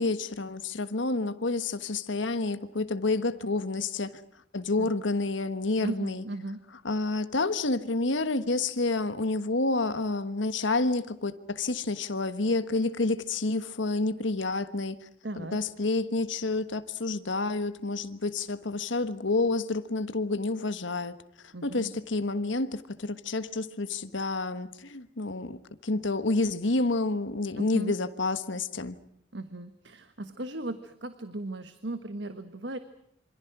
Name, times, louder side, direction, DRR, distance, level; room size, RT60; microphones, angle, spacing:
voice 1, 0.0-4.2 4.5-6.2 6.8-15.0 15.4-21.2 21.4-25.6 25.8-29.0, left 3 dB, 75° left, 1.4 m, -29 dB
voice 2, 5.8-6.6 15.2-15.6 21.5-21.9 27.6-27.9 29.3-32.8, right 1 dB, 65° right, 1.5 m, -37 dB
27.0 x 26.0 x 6.1 m
head